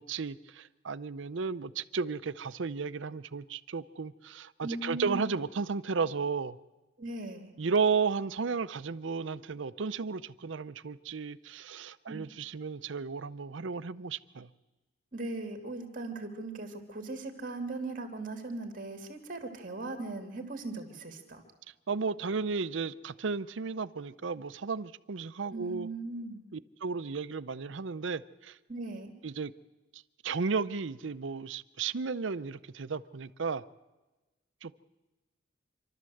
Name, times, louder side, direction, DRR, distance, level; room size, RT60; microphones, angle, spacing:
voice 1, 0.0-6.6 7.6-14.5 21.9-25.9 26.5-28.6 29.2-29.5 29.9-33.6 34.6-34.7, right 5 dB, 70° right, 15 dB, 0.6 m, -34 dB
voice 2, 4.6-5.3 7.0-7.5 12.1-12.2 15.1-21.4 25.5-26.4 28.7-29.1, right 2 dB, 45° right, 4 dB, 2.8 m, -39 dB
27.0 x 12.5 x 7.8 m, 1.1 s
head